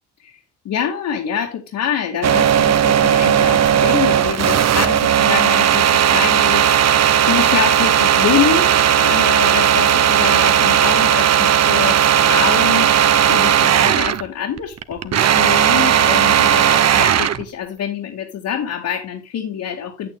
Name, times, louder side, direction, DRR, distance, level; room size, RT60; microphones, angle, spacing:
voice 1, 0.6-6.7 7.3-20.1, left 8 dB, 75° left, 1 dB, 2.0 m, -25 dB
sound 1, 2.2-14.3 14.6-17.4, right 9 dB, 60° right, 0.9 m, -15 dB
8.9 x 8.7 x 3.5 m, 0.30 s
cardioid pair, 90°, 30 cm